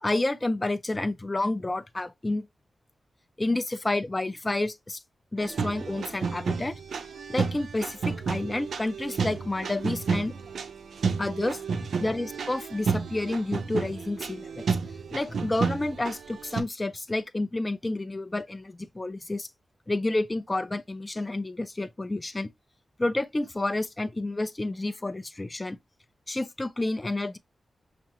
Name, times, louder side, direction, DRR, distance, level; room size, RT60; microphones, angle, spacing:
voice 1, 0.0-2.5 3.4-5.0 5.3-6.8 7.3-10.3 11.2-14.7 15.1-19.5 19.9-22.5 23.0-25.8 26.3-27.4, left 2 dB, 20° left, 0.3 m, -30 dB
sound 1, 5.4-16.6, right 5 dB, 80° right, 0.4 m, -31 dB
5.7 x 2.1 x 2.8 m
wide cardioid pair, 160°, 0 cm